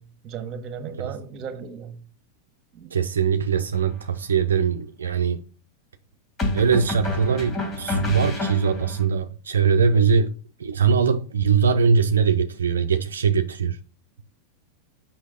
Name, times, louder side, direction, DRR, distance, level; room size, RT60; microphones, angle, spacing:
voice 1, 0.0-2.0 2.7-3.0 9.9-10.1, right 6 dB, 40° right, 1.5 m, -36 dB
voice 2, 2.9-5.4 6.5-13.8, right 6 dB, 85° right, 0.5 m, -21 dB
sound 1, 3.7-4.0 6.4-9.1, left 2 dB, 25° left, 2.8 m, -28 dB
6.4 x 5.8 x 3.8 m
hypercardioid pair, 95°, 0 cm